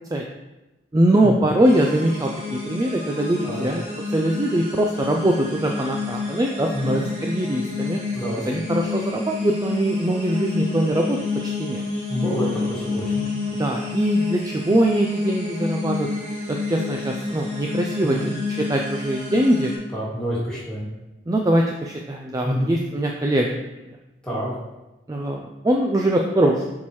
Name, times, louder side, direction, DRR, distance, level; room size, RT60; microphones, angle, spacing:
voice 1, 0.9-3.8 4.1-8.0 8.5-11.8 13.6-16.1 16.5-19.7 21.3-24.0 25.1-26.7, right 1 dB, 20° right, 1 dB, 0.3 m, -22 dB
sound 1, 1.6-19.8, left 4 dB, 35° right, 2.0 m, -29 dB
voice 2, 8.1-8.4 12.1-13.3 18.0-18.3 19.9-20.9 22.4-22.7 24.2-24.5, equal, 5° left, -8 dB, 2.1 m, -27 dB
7.2 x 4.5 x 3.1 m, 1.0 s
head